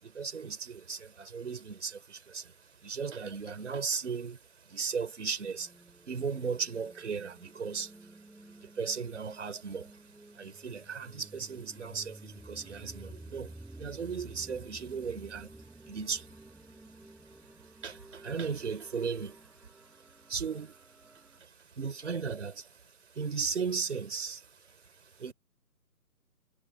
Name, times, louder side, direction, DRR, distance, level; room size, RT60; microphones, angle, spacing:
voice 1, 0.0-25.3, right 5 dB, 45° right, 4.8 m, -37 dB
sound 1, 5.4-21.4, right 2 dB, ahead, 7.6 m, -52 dB
figure-of-eight pair, 145°, 48 cm